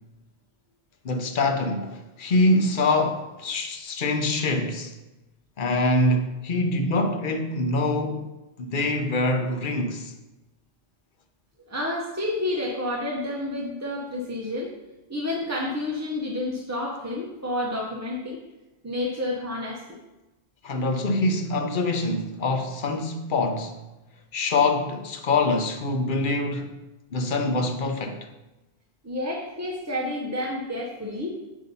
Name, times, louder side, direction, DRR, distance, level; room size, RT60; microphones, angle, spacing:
voice 1, 1.0-4.9 5.6-8.3 8.6-10.1 20.6-23.8 24.3-26.7 27.1-28.3, left 2 dB, 55° left, 0.8 m, -24 dB
voice 2, 11.7-14.7 15.1-18.4 18.8-19.8 29.0-31.4, left 1 dB, 20° right, 0.6 m, -29 dB
8.2 x 2.7 x 5.4 m
omnidirectional pair, 1.1 m